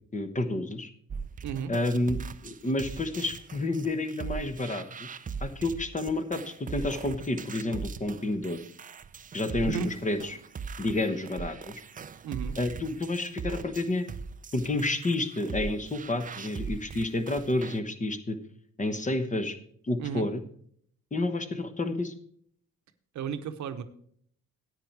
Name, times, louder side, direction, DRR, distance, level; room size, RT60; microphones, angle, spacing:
voice 1, 0.1-0.9 1.7-5.1 5.4-8.6 9.3-10.4 10.8-11.8 12.6-14.0 14.5-18.4 18.8-19.6 19.8-20.4 21.1-22.1, left 2 dB, 25° left, 9 dB, 1.2 m, -30 dB
sound 1, 1.1-17.8, right 5 dB, 25° right, 0.5 m, -40 dB
voice 2, 1.4-1.7 9.7-9.9 12.2-12.6 20.0-20.3 23.1-23.8, right 7 dB, 70° right, 9 dB, 0.9 m, -33 dB
9.7 x 8.9 x 4.6 m, 0.62 s
cardioid pair, 90°, 30 cm